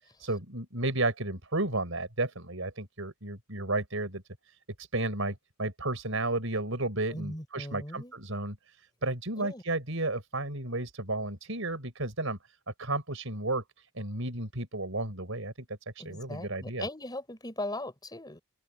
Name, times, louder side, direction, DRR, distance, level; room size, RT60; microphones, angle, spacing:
voice 1, 0.2-12.4 12.8-16.9, right 2 dB, 60° right, 6.4 m, -33 dB
voice 2, 7.1-8.1 9.4-9.6 16.0-18.4, left 1 dB, 20° left, 7.2 m, -39 dB
open air
head